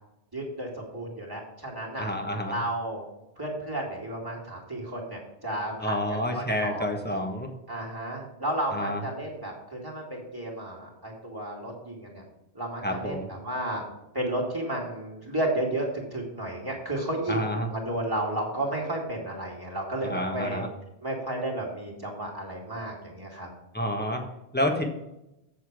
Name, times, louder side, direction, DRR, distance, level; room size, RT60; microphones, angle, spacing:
voice 1, 0.3-2.1 2.5-3.0 3.4-6.9 7.7-12.2 12.5-13.8 14.1-20.6 21.0-23.5, right 1 dB, 20° right, -3 dB, 2.3 m, -32 dB
voice 2, 2.0-2.5 5.8-7.5 8.7-9.0 12.8-13.3 17.3-17.7 20.0-20.7 23.7-24.2 24.5-24.8, left 1 dB, 10° left, 2 dB, 1.2 m, -29 dB
8.4 x 6.9 x 4.8 m, 0.89 s
omnidirectional pair, 1.2 m